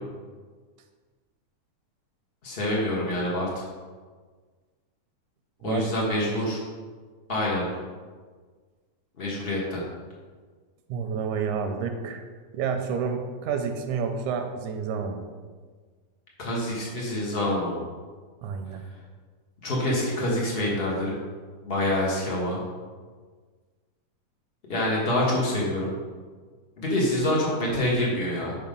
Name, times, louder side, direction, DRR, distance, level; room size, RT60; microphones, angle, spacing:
voice 1, 2.4-3.6 5.6-6.6 7.3-7.7 9.2-9.8 16.4-17.8 19.6-21.1 21.6-22.6 24.7-25.9 26.8-28.5, left 1 dB, 80° left, -4 dB, 0.5 m, -26 dB
voice 2, 10.9-12.3 12.5-15.3 18.4-18.8, right 6 dB, 85° right, 5 dB, 2.0 m, -29 dB
5.7 x 5.7 x 5.2 m, 1.5 s
omnidirectional pair, 3.5 m